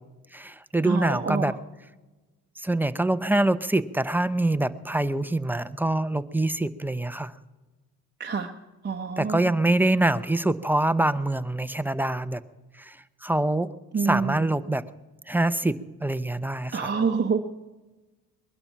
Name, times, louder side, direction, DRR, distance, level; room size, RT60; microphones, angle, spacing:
voice 1, 0.3-1.5 2.6-7.3 9.2-12.4 12.9-13.0 13.2-13.7 14.0-14.8 15.3-15.7 16.0-16.9, right 2 dB, 5° right, 12 dB, 0.7 m, -25 dB
voice 2, 0.8-1.6 8.2-8.5 8.8-9.5 13.9-14.5 16.7-17.4, right 5 dB, 25° right, 1 dB, 1.0 m, -27 dB
21.5 x 11.5 x 5.7 m, 1.2 s
cardioid pair, 80°, 39 cm